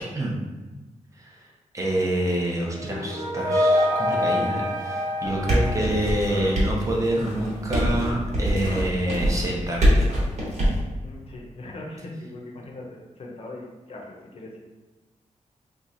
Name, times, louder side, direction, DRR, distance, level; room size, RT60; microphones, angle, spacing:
voice 1, 1.7-10.1, right 1 dB, 25° right, -2 dB, 0.6 m, -27 dB
sound 1, 2.7-6.6, left 1 dB, 90° right, 0.8 m, -26 dB
voice 2, 5.2-5.7 11.0-14.6, left 2 dB, 50° left, -1 dB, 0.7 m, -40 dB
sound 2, 5.2-10.8, equal, 60° right, 1.2 m, -24 dB
3.0 x 2.4 x 3.9 m, 1.2 s
wide cardioid pair, 165°, 13 cm